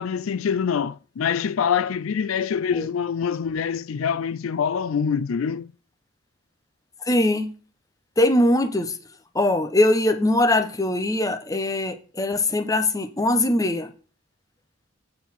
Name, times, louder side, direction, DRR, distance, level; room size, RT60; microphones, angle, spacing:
voice 1, 0.0-5.7, left 7 dB, 90° left, 0.4 m, -25 dB
voice 2, 7.0-7.5 8.2-9.0 9.3-13.9, left 1 dB, 15° left, 0.9 m, -21 dB
8.2 x 4.6 x 5.6 m
head